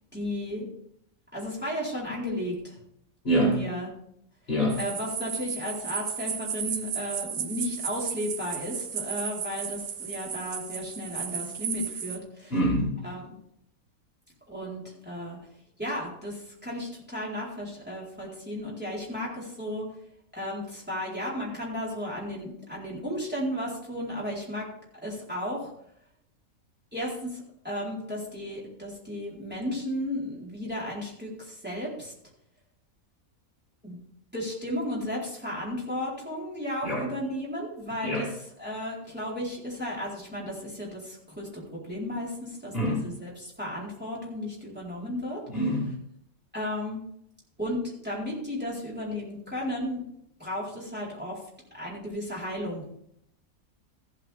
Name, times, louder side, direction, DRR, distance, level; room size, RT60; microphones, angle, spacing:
voice 1, 0.1-0.7 1.3-2.8 3.3-3.9 4.8-12.6 13.0-13.2 14.5-15.4 15.8-19.9 20.3-24.7 25.0-25.7 26.9-32.1 33.8-34.0 34.3-38.3 38.6-45.4 46.5-47.0 47.6-50.0 50.4-51.4 51.7-52.8, left 1 dB, 5° right, -6 dB, 4.3 m, -34 dB
voice 2, 3.2-3.6 4.5-4.8 12.5-13.0 36.8-37.1 38.0-38.3 42.7-43.0 45.5-45.9, equal, 40° left, -4 dB, 2.4 m, -25 dB
sound 1, 4.7-12.2, right 8 dB, 85° right, 1.4 m, -34 dB
14.5 x 8.6 x 3.6 m, 0.74 s
omnidirectional pair, 1.5 m